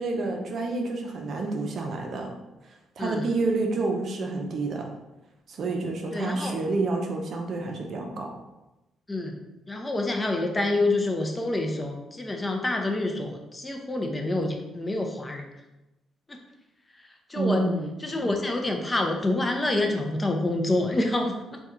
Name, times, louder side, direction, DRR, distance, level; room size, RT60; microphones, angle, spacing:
voice 1, 0.0-2.3 3.0-4.9 5.5-8.3 17.3-17.9, right 3 dB, 60° right, 2 dB, 0.5 m, -28 dB
voice 2, 6.1-6.6 9.1-9.4 9.7-15.5 16.3-16.4 17.3-17.7 18.0-21.6, left 2 dB, 20° left, 3 dB, 0.5 m, -27 dB
2.9 x 2.3 x 3.6 m, 0.98 s
cardioid pair, 90°, 0 cm